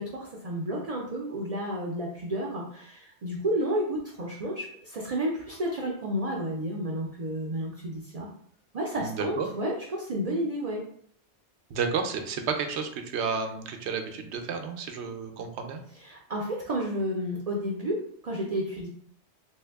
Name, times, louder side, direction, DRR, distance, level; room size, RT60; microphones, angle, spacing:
voice 1, 0.0-8.3 8.7-10.8 16.0-18.9, equal, 45° right, -2 dB, 0.5 m, -31 dB
voice 2, 9.0-9.5 11.7-15.8, right 5 dB, 75° right, 5 dB, 0.8 m, -31 dB
3.0 x 2.7 x 3.3 m, 0.65 s
omnidirectional pair, 1.2 m